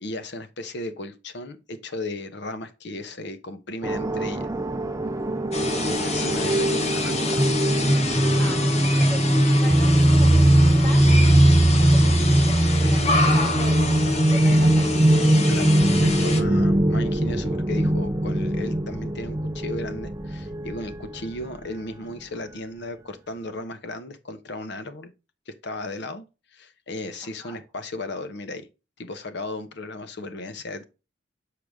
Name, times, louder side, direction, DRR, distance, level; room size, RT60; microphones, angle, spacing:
voice 1, 0.0-4.5 5.8-7.5 15.5-15.7 16.0-25.1 25.5-26.2 26.5-28.7 29.0-30.8, left 2 dB, 65° left, 0.9 m, -35 dB
sound 1, 3.8-21.0, right 1 dB, 15° right, 0.4 m, -20 dB
sound 2, 5.5-16.4, left 3 dB, 35° left, 1.0 m, -28 dB
voice 2, 8.4-9.2 9.6-11.1 11.7-15.0 27.4-27.6, left 2 dB, 15° left, 1.9 m, -39 dB
6.6 x 4.8 x 3.5 m
head